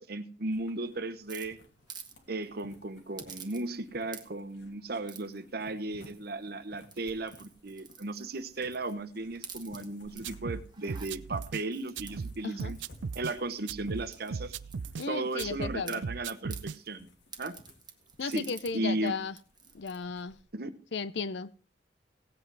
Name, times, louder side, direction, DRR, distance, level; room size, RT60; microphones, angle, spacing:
voice 1, 0.0-1.6 2.3-12.8 13.1-14.5 15.0-17.1 17.4-17.6 18.2-19.1 20.5-20.7, right 2 dB, 55° right, 1.1 m, -36 dB
sound 1, 0.5-20.4, left 1 dB, 85° left, 2.9 m, -59 dB
sound 2, 1.3-2.1 2.4-2.6 3.2-3.8 4.1-4.5 5.1-5.4 6.0-6.4 6.8-9.0 9.3-10.2 10.7-11.1 11.7-13.7 14.1-15.5 15.8-16.6 17.3-18.7 19.1-19.2 19.3-20.0, right 6 dB, 25° right, 1.5 m, -49 dB
sound 3, 10.2-11.6 12.0-13.3 13.7-15.1 15.4-16.8, right 5 dB, 90° right, 0.5 m, -38 dB
voice 2, 15.0-16.0 18.2-19.3 19.7-20.4 20.9-21.5, left 5 dB, 70° left, 0.6 m, -35 dB
17.5 x 8.5 x 4.7 m
head